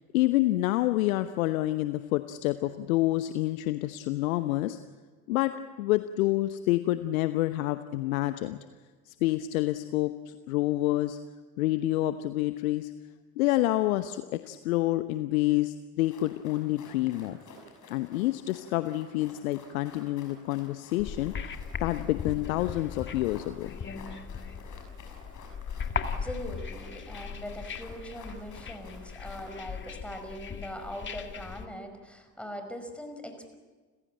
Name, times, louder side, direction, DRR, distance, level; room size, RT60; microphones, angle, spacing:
voice 1, 0.1-4.8 5.3-5.5 5.8-8.6 9.1-11.2 11.6-12.9 13.4-17.4 17.9-21.3 21.8-23.7, left 16 dB, 65° left, 11 dB, 1.0 m, -28 dB
sound 1, 16.0-29.6, left 3 dB, 40° left, 6.3 m, -52 dB
sound 2, 21.0-31.7, left 6 dB, 25° left, 2.0 m, -38 dB
voice 2, 26.1-33.5, equal, 5° left, 5 dB, 5.2 m, -41 dB
30.0 x 16.0 x 8.9 m, 1.4 s
figure-of-eight pair, 70°, 45 cm